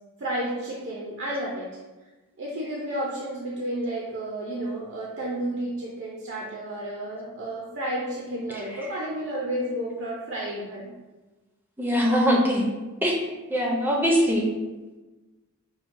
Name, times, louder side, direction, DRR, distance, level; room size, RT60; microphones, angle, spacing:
voice 1, 0.2-1.7 2.4-10.9, right 1 dB, 55° right, -4 dB, 0.6 m, -31 dB
voice 2, 11.8-12.7 13.0-13.1 13.5-14.5, equal, 10° right, -2 dB, 0.5 m, -22 dB
6.0 x 2.2 x 2.6 m, 1.2 s
head